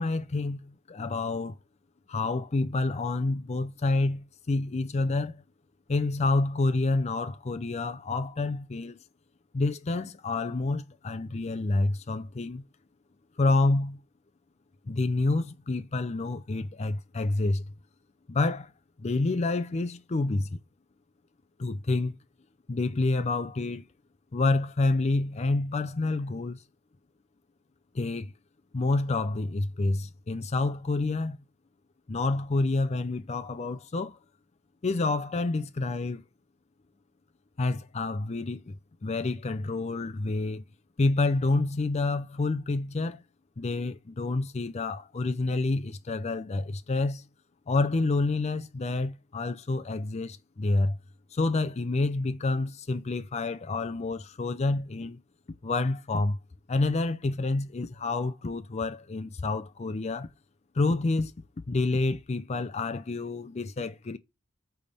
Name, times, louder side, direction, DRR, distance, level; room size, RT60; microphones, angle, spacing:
voice 1, 0.0-1.6 2.1-5.4 5.9-9.0 9.5-12.6 13.4-14.0 14.9-17.6 18.3-18.7 19.0-20.6 21.6-22.2 22.7-23.9 24.3-26.6 27.9-28.3 28.7-31.4 32.1-34.2 34.8-36.2 37.6-38.8 39.0-40.7 41.0-43.2 43.6-47.2 47.7-51.0 51.3-55.2 55.6-56.4 56.7-60.3 60.7-61.3 61.7-64.2, left 2 dB, 35° left, 0.5 m, -28 dB
9.0 x 3.5 x 6.9 m
head